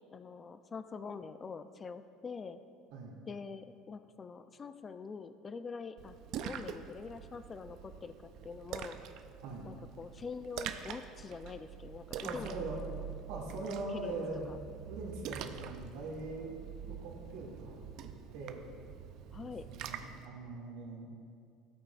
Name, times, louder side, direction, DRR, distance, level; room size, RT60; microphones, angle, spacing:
voice 1, 0.1-2.6 3.3-6.1 6.4-9.0 9.6-12.5 13.9-14.2 14.5-14.6 19.3-19.7, left 5 dB, 25° left, 10 dB, 0.4 m, -45 dB
Splash splatter, 6.0-20.3, right 9 dB, 60° right, 0.5 m, -45 dB
voice 2, 12.2-12.9 13.3-14.5 14.9-16.5 16.9-18.7 19.4-21.1, right 2 dB, 80° right, -2 dB, 2.2 m, -42 dB
16.0 x 8.7 x 2.5 m, 2.4 s
cardioid pair, 125°, 0 cm